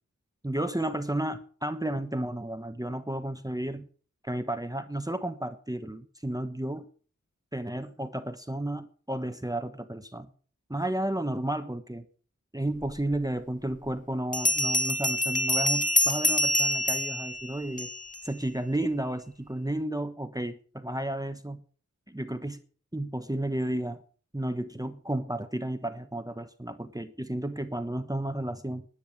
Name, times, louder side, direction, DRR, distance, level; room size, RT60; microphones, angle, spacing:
voice 1, 0.4-3.9 4.2-6.9 7.5-10.3 10.7-12.0 12.5-17.9 18.2-21.6 22.1-22.6 22.9-24.0 24.3-28.8, right 1 dB, 10° right, 9 dB, 1.2 m, -32 dB
Bell, 13.1-13.2 14.3-18.2, left 1 dB, 25° left, 1.6 m, -26 dB
10.5 x 10.5 x 6.5 m, 0.42 s
wide cardioid pair, 60°, 30 cm